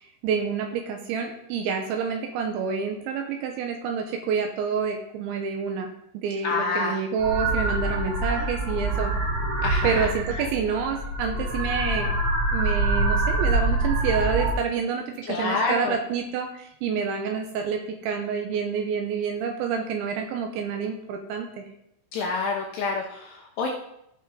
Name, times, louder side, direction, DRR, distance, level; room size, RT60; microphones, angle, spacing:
voice 1, 0.0-5.9 6.1-9.1 9.8-12.1 12.5-16.5 16.8-21.6, right 6 dB, 80° right, 3 dB, 2.8 m, -28 dB
voice 2, 6.4-7.0 8.3-8.4 9.6-10.1 15.3-16.0 22.1-23.7, left 4 dB, 75° left, 0 dB, 2.5 m, -27 dB
sound 1, 7.2-14.5, right 2 dB, 35° right, 3.7 m, -25 dB
16.5 x 5.7 x 3.8 m, 0.79 s
omnidirectional pair, 5.9 m